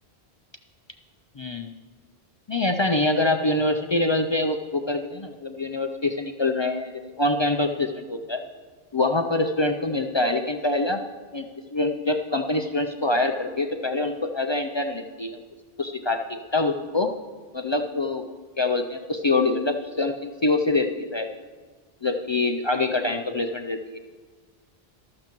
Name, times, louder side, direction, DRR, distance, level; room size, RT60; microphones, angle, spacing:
voice 1, 1.4-1.7 2.5-8.4 8.9-11.0 11.3-11.5 11.7-15.4 15.8-17.1 17.5-18.2 18.6-21.3 22.0-24.0, left 2 dB, 45° left, 5 dB, 0.3 m, -25 dB
13.5 x 13.0 x 3.0 m, 1.4 s
omnidirectional pair, 1.0 m